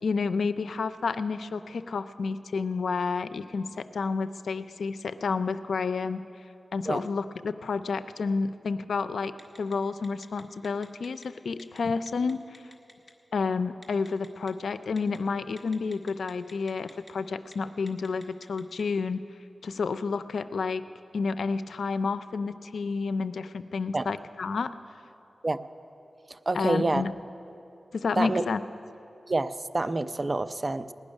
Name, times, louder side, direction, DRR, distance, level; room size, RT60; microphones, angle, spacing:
voice 1, 0.0-6.3 6.7-12.6 13.3-19.3 19.6-20.8 21.1-24.7 26.5-27.1 27.9-28.6, left 4 dB, 90° left, 12 dB, 0.4 m, -30 dB
Telephone, 9.4-9.7 10.0-11.3 11.6-11.8 12.1-13.1 13.8-14.5 15.0-15.2 15.6-17.1 17.4-17.5 17.9-18.8, left 1 dB, 15° left, 1.7 m, -50 dB
voice 2, 26.3-27.0 28.2-28.4 29.3-30.9, right 2 dB, 35° right, 12 dB, 0.5 m, -27 dB
18.5 x 6.3 x 9.8 m, 2.8 s
wide cardioid pair, 70°, 0 cm